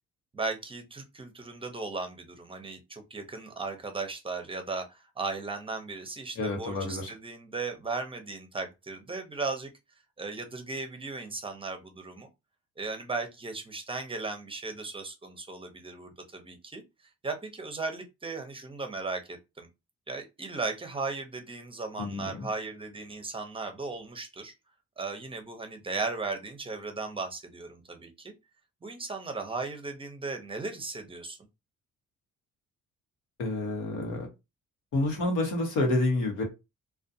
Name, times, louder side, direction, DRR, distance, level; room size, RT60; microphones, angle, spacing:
voice 1, 0.3-9.7 10.2-12.3 12.8-16.8 17.2-19.7 20.1-24.5 25.0-28.3 28.8-31.4, right 3 dB, 20° right, 6 dB, 0.6 m, -36 dB
voice 2, 6.4-7.1 22.0-22.5 33.4-34.3 34.9-36.4, left 2 dB, 85° left, 2 dB, 1.0 m, -28 dB
2.4 x 2.2 x 2.6 m, 0.24 s
cardioid pair, 90°, 30 cm